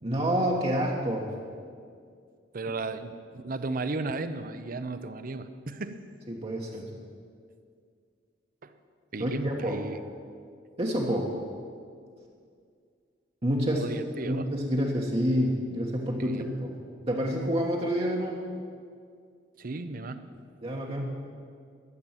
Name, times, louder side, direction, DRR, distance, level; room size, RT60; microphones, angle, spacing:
voice 1, 0.0-1.3 6.3-6.9 9.2-9.8 10.8-11.3 13.4-13.9 14.2-16.7 17.0-18.4 20.6-21.1, equal, 35° right, -2 dB, 1.3 m, -28 dB
voice 2, 2.5-6.0 8.6-8.7 9.1-10.0 13.7-14.4 16.2-16.4 19.6-20.2, right 3 dB, 50° right, 11 dB, 0.7 m, -35 dB
13.5 x 7.3 x 9.0 m, 2.2 s
head